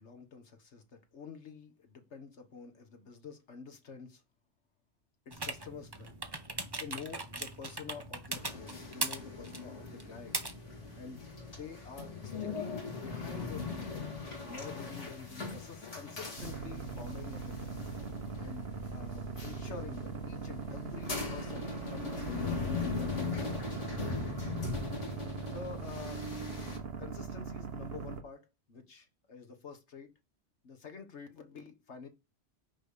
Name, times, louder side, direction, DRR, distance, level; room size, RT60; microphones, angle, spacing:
voice 1, 0.0-4.2 5.3-6.5 6.8-10.5 11.0-14.1 14.4-17.9 18.4-24.9 25.5-26.3 27.0-30.1 30.6-32.1, left 5 dB, 70° left, 1.8 m, -48 dB
sound 1, 5.3-11.2, right 2 dB, 20° right, 1.1 m, -40 dB
sound 2, 8.3-26.8, left 4 dB, 90° left, 2.4 m, -40 dB
sound 3, 16.4-28.2, right 4 dB, 60° right, 1.3 m, -41 dB
6.2 x 5.1 x 6.8 m
omnidirectional pair, 1.2 m